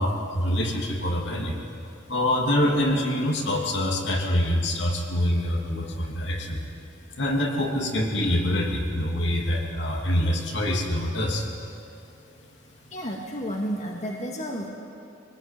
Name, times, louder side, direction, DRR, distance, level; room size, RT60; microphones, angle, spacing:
voice 1, 0.0-1.6 2.1-6.6 7.2-11.5, left 1 dB, 65° left, 0 dB, 2.9 m, -25 dB
voice 2, 12.9-14.7, equal, 35° left, -1 dB, 2.3 m, -31 dB
24.0 x 19.0 x 9.1 m, 2.6 s
head